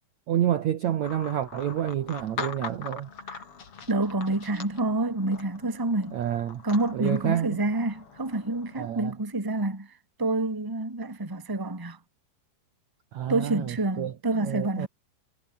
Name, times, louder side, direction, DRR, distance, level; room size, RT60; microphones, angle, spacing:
voice 1, 0.3-3.1 6.1-6.6 6.9-7.6 8.7-9.1 13.1-14.9, right 11 dB, 75° right, 1.7 m, -29 dB
sound 1, 1.0-8.9, left 5 dB, 35° left, 3.4 m, -42 dB
voice 2, 3.9-6.2 6.6-9.9 10.2-12.0 13.3-14.9, right 2 dB, 5° right, 2.0 m, -28 dB
omnidirectional pair, 5.3 m